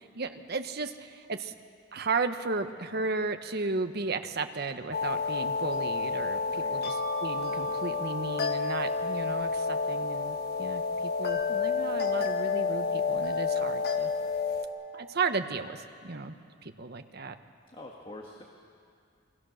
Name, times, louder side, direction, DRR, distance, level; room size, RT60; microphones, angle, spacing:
voice 1, 0.0-1.5 1.9-14.1 14.9-17.4, right 4 dB, 55° right, 8 dB, 1.1 m, -34 dB
sound 1, 4.9-14.6, left 4 dB, 55° left, 1.5 m, -30 dB
voice 2, 17.7-18.4, left 1 dB, 25° left, 0 dB, 1.7 m, -45 dB
28.0 x 22.0 x 6.5 m, 2.3 s
head